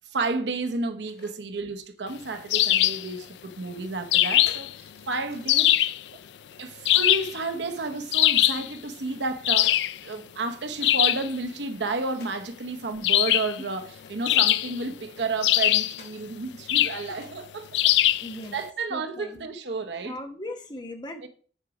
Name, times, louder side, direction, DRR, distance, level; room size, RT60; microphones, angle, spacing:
voice 1, 0.1-5.7 6.6-18.0 18.5-20.2 21.2-21.3, right 3 dB, 80° right, 0.8 m, -31 dB
sound 1, 0.9-1.3 1.8-2.8 3.3-6.9 7.3-7.8 8.1-10.2 10.6-12.5 13.2-13.6 13.9-16.2 16.6-16.7 17.2-17.7 18.3-18.7 19.1-19.4, left 3 dB, 60° left, 1.8 m, -52 dB
sound 2, 2.5-3.1 4.1-4.7 5.5-6.0 6.9-7.4 8.1-8.7 9.4-10.0 10.8-11.3 13.0-13.6 14.3-14.9 15.4-16.0 16.7-17.0 17.7-18.3, left 14 dB, 80° left, 0.3 m, -21 dB
voice 2, 18.2-18.5 18.9-19.4 20.0-21.3, left 1 dB, 25° left, 1.0 m, -38 dB
7.9 x 5.2 x 4.8 m
head